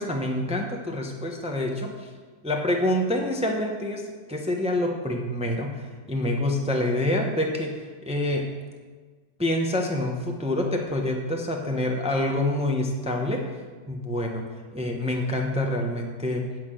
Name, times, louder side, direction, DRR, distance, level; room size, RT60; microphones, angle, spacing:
voice 1, 0.0-2.1 2.4-7.7 8.1-8.5 9.4-13.4 13.9-14.4 14.7-16.4, left 1 dB, 5° right, 2 dB, 0.5 m, -26 dB
8.3 x 5.9 x 7.6 m, 1.4 s
omnidirectional pair, 1.9 m